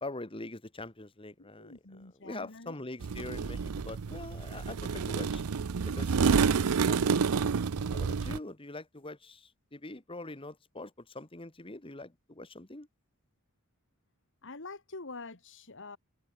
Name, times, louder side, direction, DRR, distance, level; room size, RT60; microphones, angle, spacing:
voice 1, 0.0-5.4 5.9-7.5 7.9-12.9, left 2 dB, 25° left, 1.9 m, -44 dB
voice 2, 1.4-2.8 14.4-16.0, left 3 dB, 60° left, 2.2 m, -46 dB
sound 1, 3.0-8.4, right 5 dB, 90° right, 0.6 m, -29 dB
head